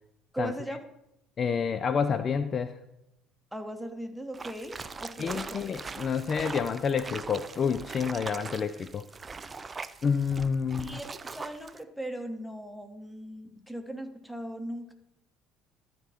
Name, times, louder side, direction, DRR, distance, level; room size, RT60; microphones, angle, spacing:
voice 1, 0.3-0.8 3.5-5.6 10.8-14.9, right 1 dB, ahead, 7 dB, 1.3 m, -39 dB
voice 2, 1.4-2.7 5.2-9.0 10.0-11.0, left 6 dB, 40° left, 12 dB, 0.4 m, -29 dB
sound 1, 4.3-11.8, right 4 dB, 25° right, 0.5 m, -41 dB
12.5 x 4.5 x 5.2 m, 0.86 s
figure-of-eight pair, 60°, 0 cm